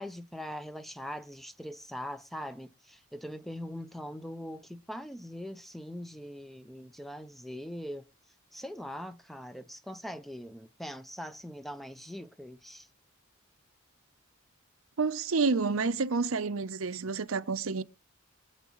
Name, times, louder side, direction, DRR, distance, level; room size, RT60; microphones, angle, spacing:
voice 1, 0.0-8.1 8.5-12.9, equal, ahead, 0.5 m, -42 dB
voice 2, 15.0-17.8, right 4 dB, 80° right, 0.7 m, -29 dB
24.5 x 8.2 x 3.1 m
head